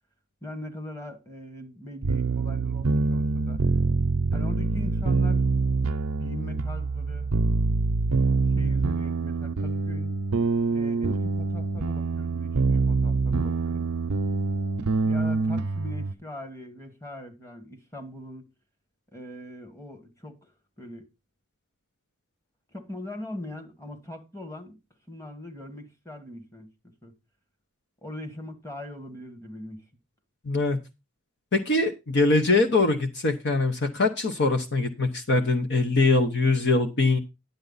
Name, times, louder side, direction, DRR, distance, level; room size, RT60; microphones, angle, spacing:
voice 1, 0.4-3.6 4.3-5.4 6.2-7.3 8.5-10.2 10.7-13.9 15.0-18.4 19.1-20.5 20.8-21.0 22.7-24.8 25.1-26.7 27.0-27.1 28.0-29.8, left 1 dB, 15° left, 1.6 m, -41 dB
sound 1, 2.0-16.1, right 4 dB, 75° right, 0.6 m, -25 dB
voice 2, 30.4-30.8 31.5-37.2, left 3 dB, 50° left, 0.9 m, -23 dB
10.5 x 8.0 x 4.0 m
head